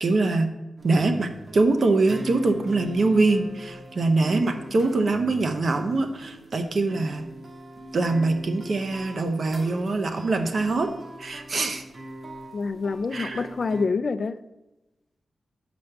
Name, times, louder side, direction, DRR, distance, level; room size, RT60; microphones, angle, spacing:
voice 1, 0.0-0.5 0.8-7.3 7.9-10.9 11.2-11.8 13.1-13.5, right 3 dB, 60° right, 6 dB, 0.9 m, -23 dB
sound 1, 0.8-13.9, right 1 dB, 45° right, 1.3 m, -41 dB
voice 2, 12.5-14.4, left 4 dB, 55° left, 11 dB, 0.4 m, -27 dB
6.5 x 5.2 x 5.9 m, 1.0 s
cardioid pair, 75°, 0 cm